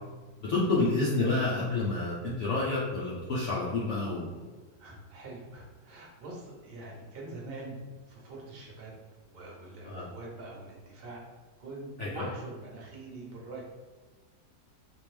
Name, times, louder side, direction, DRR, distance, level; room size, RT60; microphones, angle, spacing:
voice 1, 0.5-4.5 9.8-10.0 12.0-12.3, left 3 dB, 60° left, -7 dB, 0.9 m, -29 dB
voice 2, 4.8-8.9 9.2-11.2 11.6-13.6, right 2 dB, 45° right, -3 dB, 1.0 m, -44 dB
3.5 x 2.9 x 3.2 m, 1.3 s
omnidirectional pair, 1.7 m